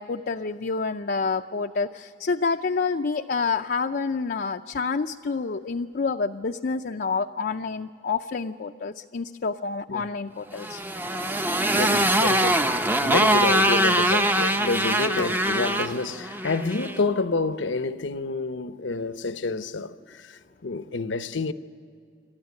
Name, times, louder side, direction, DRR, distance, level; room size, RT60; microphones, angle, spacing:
voice 1, 0.0-10.8, left 4 dB, 55° left, 0.5 m, -28 dB
Motorcycle, 10.5-17.0, right 1 dB, 10° right, 0.6 m, -23 dB
voice 2, 11.7-21.5, left 3 dB, 85° left, 0.9 m, -28 dB
28.0 x 13.0 x 9.5 m
head